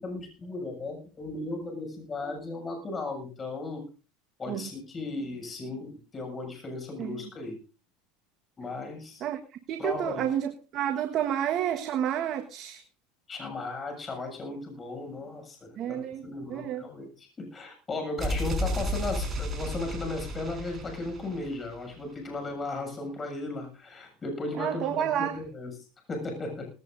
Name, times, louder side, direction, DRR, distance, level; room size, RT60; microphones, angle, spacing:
voice 1, 0.0-3.8 4.4-7.6 8.6-9.3 9.8-10.3 13.3-26.7, left 2 dB, 25° left, 7.1 m, -36 dB
voice 2, 9.7-12.8 15.8-16.8 24.6-25.4, right 10 dB, 45° right, 1.5 m, -30 dB
sound 1, 18.2-22.0, equal, 25° right, 5.0 m, -33 dB
19.0 x 17.0 x 2.7 m
supercardioid pair, 110°, 0 cm